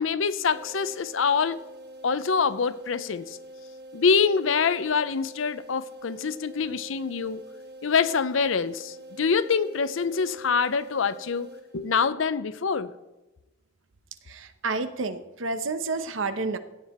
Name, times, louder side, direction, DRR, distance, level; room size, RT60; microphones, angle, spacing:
voice 1, 0.0-1.6 2.0-3.4 3.9-7.4 7.8-11.5 11.7-13.0, left 5 dB, 85° left, 0.6 m, -25 dB
sound 1, 0.5-12.2, right 1 dB, 55° right, 1.6 m, -45 dB
voice 2, 14.3-16.6, right 3 dB, 85° right, 0.9 m, -30 dB
15.5 x 9.1 x 4.3 m
head